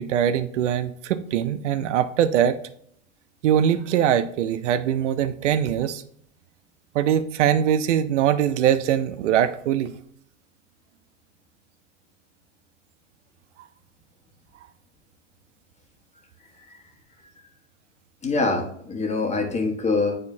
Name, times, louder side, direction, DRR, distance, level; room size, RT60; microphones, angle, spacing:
voice 1, 0.0-2.6 3.4-6.0 6.9-9.9, right 10 dB, 75° right, 13 dB, 0.6 m, -22 dB
voice 2, 18.2-20.2, left 3 dB, 20° left, 3 dB, 1.3 m, -24 dB
9.3 x 4.2 x 2.7 m, 0.66 s
hypercardioid pair, 100°, 36 cm